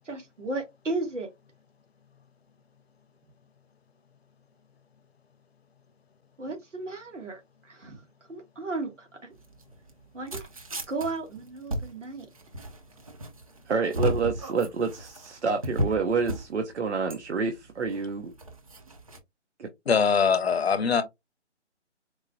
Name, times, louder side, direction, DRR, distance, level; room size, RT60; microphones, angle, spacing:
voice 1, 0.0-1.3 6.4-8.0 8.3-9.3 10.1-10.5 10.9-12.3, right 2 dB, 85° right, 1.5 m, -34 dB
sound 1, 9.3-19.2, equal, 30° right, 0.6 m, -35 dB
voice 2, 13.7-18.3 19.6-19.7, right 5 dB, 70° right, 0.8 m, -28 dB
voice 3, 19.9-21.0, left 6 dB, 60° left, 0.8 m, -22 dB
4.5 x 2.2 x 2.6 m
figure-of-eight pair, 155°, 36 cm